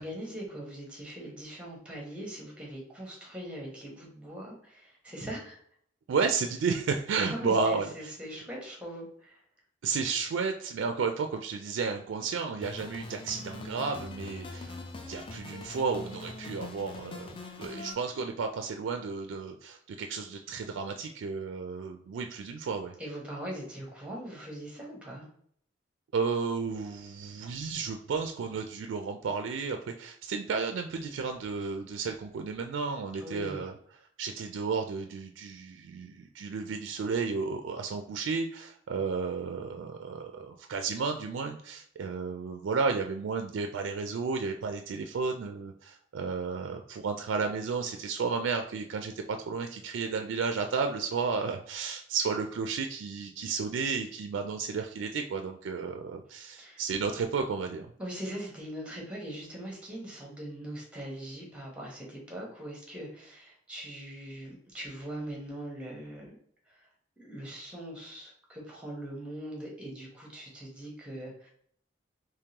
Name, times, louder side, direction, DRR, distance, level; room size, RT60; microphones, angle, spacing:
voice 1, 0.0-5.6 7.2-9.4 23.0-25.3 33.2-33.6 56.4-56.8 58.0-66.4 66.7-66.9 67.2-71.5, right 1 dB, 5° right, -1 dB, 1.1 m, -41 dB
voice 2, 6.1-8.1 9.8-14.8 15.0-22.9 26.1-33.7 34.2-57.9, right 5 dB, 90° right, 5 dB, 0.3 m, -32 dB
sound 1, 12.6-17.9, left 2 dB, 30° left, 0.4 m, -42 dB
3.6 x 3.1 x 2.8 m, 0.63 s
head